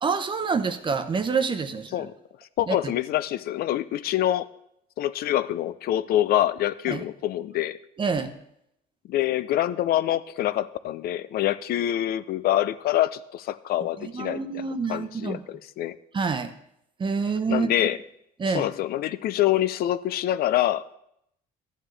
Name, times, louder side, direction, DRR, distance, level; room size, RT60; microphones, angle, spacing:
voice 1, 0.0-2.1 2.7-2.9 6.9-7.0 8.0-8.3 14.0-15.4 16.1-16.5 17.0-17.7 18.4-18.7, right 5 dB, 30° right, 9 dB, 0.8 m, -27 dB
voice 2, 2.6-4.5 5.0-7.8 9.1-14.6 14.9-16.0 17.5-18.0 18.5-20.8, left 13 dB, 65° left, 15 dB, 0.4 m, -25 dB
13.0 x 9.2 x 3.3 m, 0.76 s
cardioid pair, 110°, 17 cm